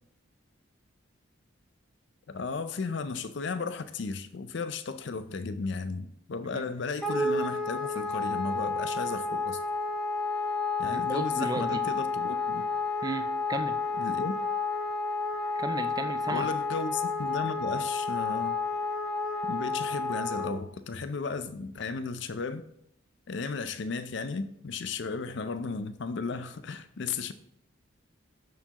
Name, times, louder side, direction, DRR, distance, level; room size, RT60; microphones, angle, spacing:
voice 1, 2.3-9.6 10.8-12.7 14.0-14.3 16.3-18.6 19.5-22.6 23.3-27.3, left 4 dB, 55° left, 0.5 m, -34 dB
Wind instrument woodwind instrument, 7.0-20.5, left 3 dB, 5° left, 0.7 m, -31 dB
voice 2, 10.9-11.8 13.0-13.8 15.6-16.5, right 2 dB, 20° right, 0.3 m, -34 dB
12.5 x 4.5 x 2.9 m
head